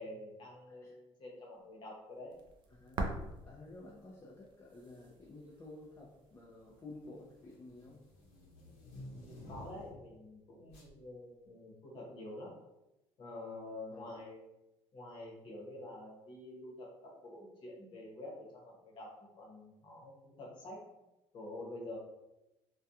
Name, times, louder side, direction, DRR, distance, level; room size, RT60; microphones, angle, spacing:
voice 1, 0.0-2.4 3.9-4.0 9.1-12.6 13.2-14.4 14.9-20.8 21.3-22.0, left 1 dB, 50° left, -2 dB, 0.9 m, -48 dB
sound 1, 2.3-9.1, right 2 dB, 50° right, 0.4 m, -46 dB
voice 2, 2.7-8.0 13.9-14.2, left 2 dB, 25° left, -4 dB, 0.4 m, -52 dB
sound 2, 3.8-4.1 5.0-5.5 5.8-10.1 10.7-10.9, left 1 dB, 80° left, 0.8 m, -53 dB
2.3 x 2.2 x 2.7 m, 0.94 s
cardioid pair, 125°, 11 cm